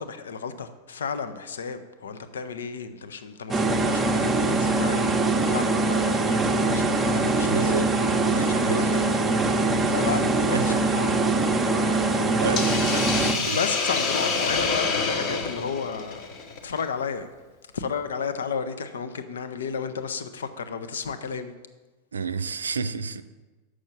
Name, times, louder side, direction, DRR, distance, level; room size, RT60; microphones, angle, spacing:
voice 1, 0.0-7.9 8.2-16.3 16.6-17.3 17.7-21.5, left 6 dB, 65° left, 0.6 m, -33 dB
sound 1, 3.5-13.3, right 3 dB, 10° right, 0.7 m, -23 dB
voice 2, 7.5-8.8 10.5-10.6 12.4-12.6 13.5-13.6 22.1-23.2, right 5 dB, 70° right, 0.4 m, -29 dB
Hiss, 12.6-16.8, left 4 dB, 40° left, 0.9 m, -27 dB
6.3 x 6.3 x 7.1 m
figure-of-eight pair, 90°, 0 cm